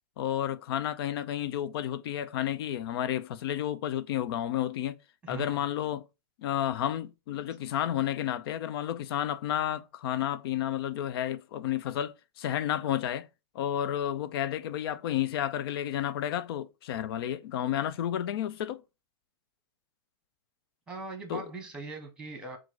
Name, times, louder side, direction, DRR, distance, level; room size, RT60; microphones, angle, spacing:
voice 1, 0.2-5.0 5.3-6.1 6.4-13.3 13.5-18.8 21.3-21.5, left 11 dB, 70° left, 0.5 m, -31 dB
voice 2, 5.2-5.9 20.9-22.6, right 3 dB, 5° right, 1.2 m, -41 dB
3.8 x 2.5 x 4.5 m
hypercardioid pair, 135°, 13 cm